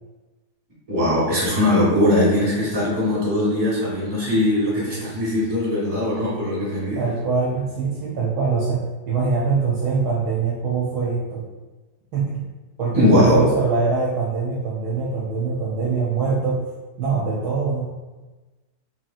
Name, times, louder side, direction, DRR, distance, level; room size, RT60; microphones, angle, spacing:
voice 1, 0.9-7.0 12.9-13.5, left 1 dB, 25° right, -7 dB, 1.0 m, -20 dB
voice 2, 6.9-11.4 12.1-12.4 12.8-16.6 17.0-17.9, right 4 dB, 75° right, -4 dB, 1.0 m, -23 dB
3.1 x 2.8 x 2.3 m, 1.2 s
omnidirectional pair, 1.8 m